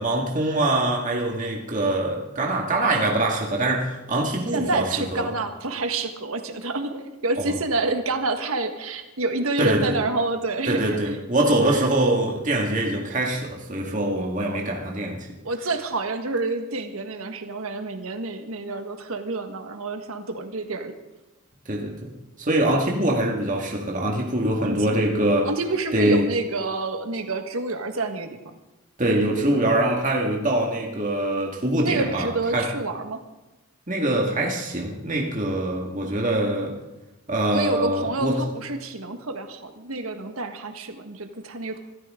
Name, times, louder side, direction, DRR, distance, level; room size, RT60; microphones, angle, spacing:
voice 1, 0.0-5.3 7.4-7.5 9.6-10.0 10.7-15.3 21.7-22.1 22.4-25.5 25.9-26.3 29.0-32.7 33.9-36.8 37.3-38.4, right 1 dB, 35° right, -1 dB, 2.0 m, -23 dB
voice 2, 4.5-11.0 14.4-14.7 15.4-20.9 24.6-25.1 25.4-28.4 31.8-33.2 37.5-41.8, right 3 dB, 80° right, 6 dB, 1.5 m, -28 dB
25.5 x 13.5 x 3.8 m, 1.0 s
head